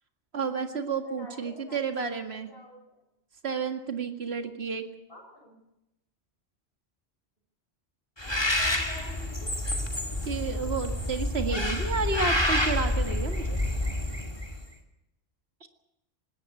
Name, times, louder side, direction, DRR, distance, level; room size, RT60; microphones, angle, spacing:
voice 1, 0.3-2.5 3.4-4.9 10.3-13.6, right 5 dB, 60° right, 6 dB, 2.2 m, -31 dB
voice 2, 1.0-3.0 5.1-5.6 8.2-9.5, left 1 dB, 55° left, 3 dB, 6.5 m, -48 dB
Bird, 8.2-14.6, left 1 dB, 20° left, 2.4 m, -28 dB
20.0 x 16.5 x 8.3 m, 0.90 s
omnidirectional pair, 1.2 m